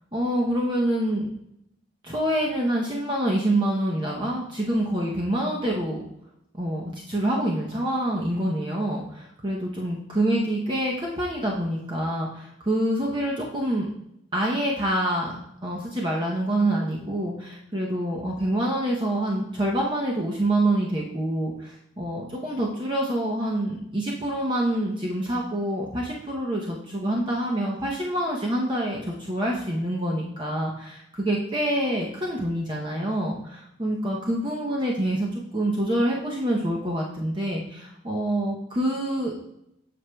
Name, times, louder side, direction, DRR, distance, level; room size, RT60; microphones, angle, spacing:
voice 1, 0.1-1.3 2.0-6.0 6.6-13.9 14.3-39.3, right 1 dB, 25° right, -3 dB, 0.7 m, -26 dB
7.9 x 6.0 x 2.2 m, 0.79 s
head